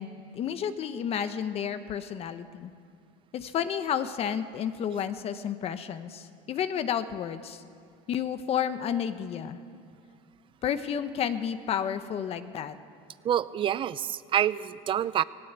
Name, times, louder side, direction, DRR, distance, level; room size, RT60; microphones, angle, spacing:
voice 1, 0.0-2.7 3.3-7.6 8.1-9.6 10.6-12.8, left 8 dB, 40° left, 11 dB, 1.0 m, -31 dB
voice 2, 13.2-15.2, right 10 dB, 35° right, 17 dB, 0.6 m, -27 dB
19.0 x 18.0 x 8.2 m, 2.3 s
cardioid pair, 135°, 15 cm